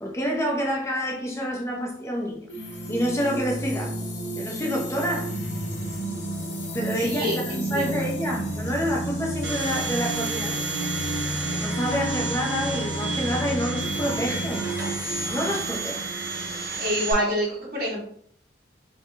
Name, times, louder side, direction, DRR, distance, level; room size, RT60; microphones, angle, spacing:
voice 1, 0.0-2.5 2.9-4.1 4.3-5.3 6.7-10.6 11.5-14.7 15.3-16.1, equal, 15° left, 0.5 m, -28 dB
sound 1, 2.5-17.2, right 1 dB, 70° left, 1.2 m, -32 dB
voice 2, 7.0-8.1 16.8-18.0, equal, 55° right, 1.6 m, -27 dB
Domestic sounds home sounds, 9.4-17.1, right 4 dB, 80° right, 1.2 m, -32 dB
4.2 x 2.2 x 3.8 m
head